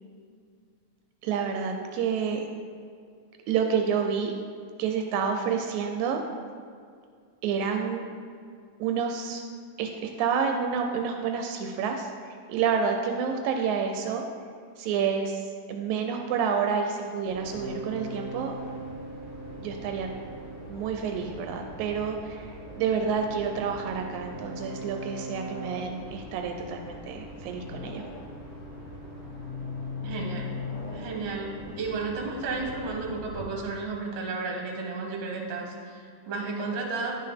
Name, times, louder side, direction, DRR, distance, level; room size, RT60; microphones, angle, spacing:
voice 1, 1.2-2.4 3.5-4.3 4.8-6.2 7.4-8.1 8.8-9.4 9.8-14.2 14.8-18.6 19.6-20.1 20.7-22.5 22.8-28.1, right 6 dB, 85° right, 4 dB, 1.9 m, -29 dB
sound 1, 17.3-33.4, left 1 dB, 60° left, 2.9 m, -40 dB
voice 2, 30.0-30.5 30.9-37.2, right 3 dB, 65° right, 0 dB, 2.0 m, -33 dB
10.5 x 5.6 x 3.5 m, 2.2 s
omnidirectional pair, 3.3 m